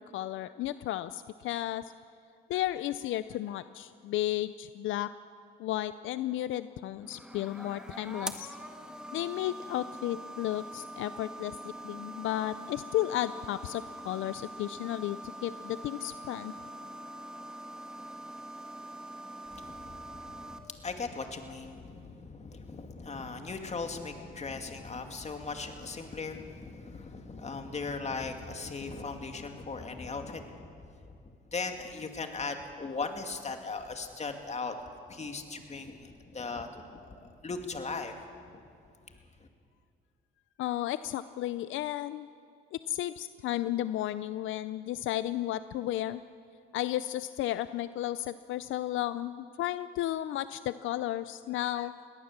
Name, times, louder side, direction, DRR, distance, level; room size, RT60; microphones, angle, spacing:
voice 1, 0.0-1.8 2.5-5.1 5.6-8.6 9.1-16.5 40.6-42.3 42.7-46.2 46.7-51.9, left 13 dB, 80° left, 14 dB, 0.5 m, -33 dB
sound 1, 7.0-20.6, right 1 dB, 5° right, 1.7 m, -44 dB
voice 2, 19.5-31.1 31.5-34.8 35.1-38.1 38.5-38.6, left 4 dB, 35° left, 5 dB, 2.3 m, -38 dB
21.0 x 18.0 x 7.4 m, 2.4 s
cardioid pair, 90°, 20 cm